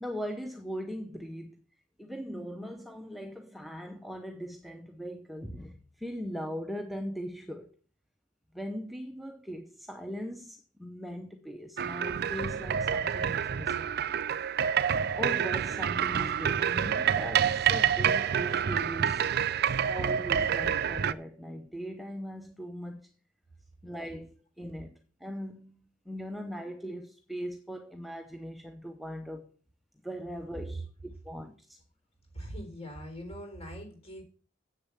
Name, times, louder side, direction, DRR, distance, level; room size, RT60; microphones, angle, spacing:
voice 1, 0.0-1.6 2.0-7.7 8.5-13.9 15.1-19.2 19.8-23.1 23.8-25.8 26.1-29.5 30.0-31.8, equal, ahead, 0.7 m, -40 dB
sound 1, 11.8-21.1, right 8 dB, 55° right, 0.4 m, -28 dB
voice 2, 32.3-34.2, equal, 35° left, 3.9 m, -42 dB
8.2 x 6.8 x 7.0 m
head